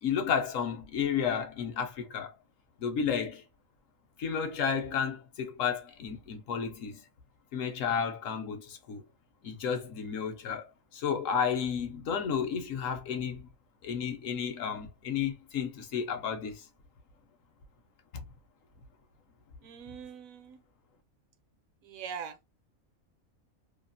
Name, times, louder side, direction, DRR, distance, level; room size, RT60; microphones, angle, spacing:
voice 1, 0.0-2.3 2.8-3.4 4.2-7.0 7.5-9.0 9.4-13.5 13.8-16.7 18.1-18.2, left 7 dB, 70° left, 1.0 m, -32 dB
voice 2, 19.6-20.6 21.8-22.4, right 7 dB, 75° right, 1.0 m, -42 dB
2.8 x 2.3 x 2.5 m
omnidirectional pair, 1.5 m